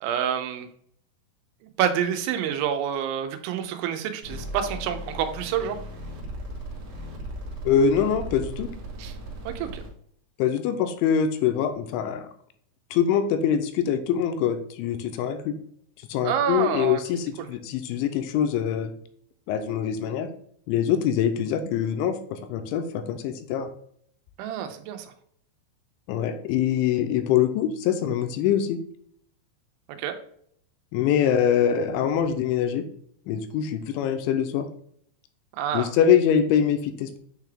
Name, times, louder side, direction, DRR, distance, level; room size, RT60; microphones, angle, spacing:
voice 1, 0.0-0.7 1.8-5.8 9.0-9.1 9.5-9.8 16.2-17.0 17.4-17.5 24.4-25.1 29.9-30.1 35.6-35.9, right 9 dB, 90° right, 7 dB, 3.1 m, -28 dB
sound 1, 4.2-9.9, equal, 65° right, 1.6 m, -37 dB
voice 2, 7.7-8.7 10.4-12.3 12.9-15.5 16.1-18.9 19.5-20.3 20.7-23.7 26.1-28.8 30.9-32.8 33.3-34.7 35.7-37.2, left 8 dB, 85° left, 7 dB, 2.9 m, -24 dB
8.3 x 3.3 x 3.5 m, 0.65 s
omnidirectional pair, 5.3 m